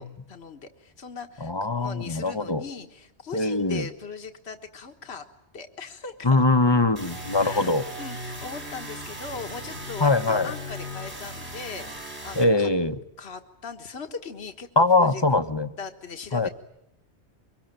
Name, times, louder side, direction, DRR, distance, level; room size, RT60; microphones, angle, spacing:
voice 1, 0.0-1.5 1.8-5.2 5.5-6.4 7.4-12.7 13.2-14.7 14.9-15.2 15.8-16.5, left 5 dB, 70° left, 6 dB, 1.8 m, -39 dB
voice 2, 1.4-2.6 3.3-3.8 6.2-7.8 10.0-10.5 12.4-13.0 14.8-15.7 16.3-16.5, left 2 dB, 25° left, 10 dB, 1.1 m, -22 dB
sound 1, 7.0-12.4, equal, 70° right, 7.2 m, -37 dB
24.5 x 22.5 x 9.0 m, 0.83 s
omnidirectional pair, 1.2 m